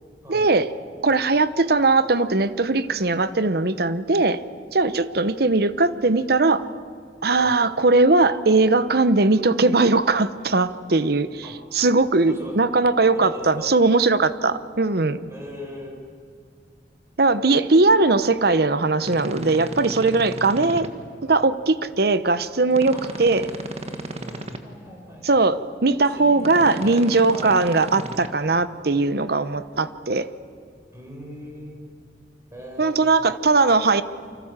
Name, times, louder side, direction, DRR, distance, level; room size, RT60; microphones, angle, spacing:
voice 1, 0.3-0.7 1.0-4.4 4.7-6.7 7.2-11.4 11.7-15.2 17.2-20.9 21.2-23.5 25.2-30.3 32.8-34.0, right 3 dB, 60° right, 13 dB, 1.0 m, -19 dB
voice 2, 12.3-12.6 13.1-13.7 15.3-16.0 22.9-23.2 23.8-25.3 25.8-27.6 30.9-31.9 32.5-33.0, equal, 15° right, 0 dB, 6.9 m, -40 dB
sound 1, 19.0-20.9 22.7-24.6 26.4-28.3, right 1 dB, 35° right, 1.8 m, -34 dB
29.5 x 25.5 x 7.5 m, 2.2 s
head